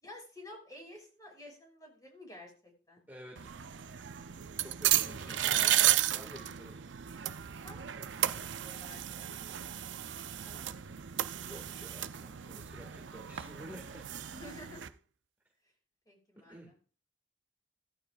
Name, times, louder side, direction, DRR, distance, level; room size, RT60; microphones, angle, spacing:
voice 1, 0.0-3.0 5.5-5.9 7.6-10.0 10.4-10.9 14.3-14.8 16.1-16.6, left 1 dB, 20° left, 1 dB, 5.9 m, -52 dB
voice 2, 3.1-3.5 4.6-6.8 11.4-14.3 16.5-16.7, equal, 10° right, 0 dB, 2.0 m, -50 dB
sound 1, 3.4-14.9, right 12 dB, 80° right, 0.6 m, -33 dB
16.0 x 14.0 x 2.5 m, 0.39 s
head